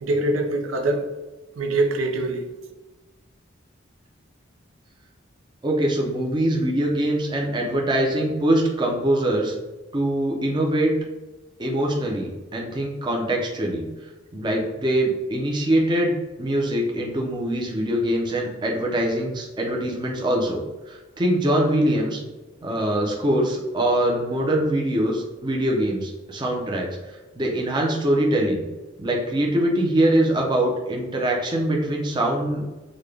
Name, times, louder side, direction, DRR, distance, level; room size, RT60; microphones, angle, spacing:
voice 1, 0.0-1.1 1.6-2.5, right 2 dB, 85° right, 4 dB, 0.5 m, -23 dB
voice 2, 5.6-9.5 9.9-10.9 11.6-13.8 14.3-16.1 16.4-22.2 22.6-26.9 27.4-28.6 29.0-32.6, right 1 dB, 20° right, -1 dB, 0.5 m, -23 dB
3.9 x 2.2 x 3.2 m, 1.1 s
head